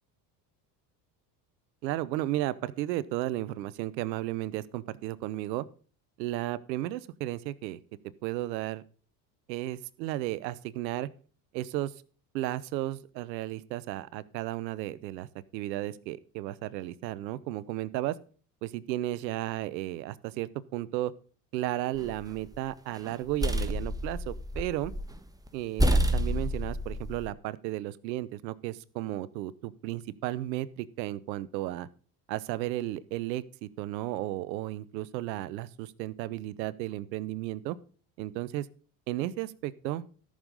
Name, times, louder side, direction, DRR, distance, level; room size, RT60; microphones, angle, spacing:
voice 1, 1.8-5.7 6.2-7.8 8.2-8.8 9.5-11.1 11.5-11.9 12.3-15.3 15.5-18.2 18.6-21.1 21.5-24.9 25.5-25.8 26.1-31.9 32.3-37.8 38.2-38.7 39.1-40.0, right 15 dB, 90° right, 18 dB, 0.8 m, -34 dB
sound 1, 22.0-22.6 23.0-25.2 25.5-25.6 25.8-27.3, equal, 5° right, 1.2 m, -28 dB
13.5 x 6.5 x 5.3 m, 0.40 s
supercardioid pair, 75°, 50 cm